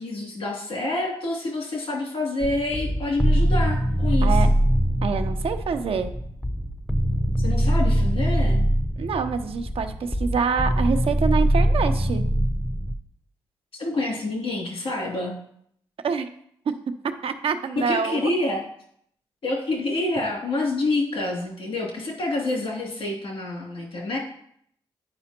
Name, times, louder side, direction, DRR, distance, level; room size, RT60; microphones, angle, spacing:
voice 1, 0.0-4.4 7.4-8.6 13.7-15.3 17.8-18.6 19.4-24.2, left 2 dB, 70° left, -3 dB, 2.8 m, -27 dB
sound 1, 2.4-13.0, equal, 5° left, 0.6 m, -23 dB
voice 2, 5.0-6.1 9.0-12.2 16.0-16.3 17.2-18.3, right 5 dB, 70° right, 7 dB, 0.7 m, -26 dB
9.6 x 5.0 x 2.9 m, 0.68 s
supercardioid pair, 45°, 10 cm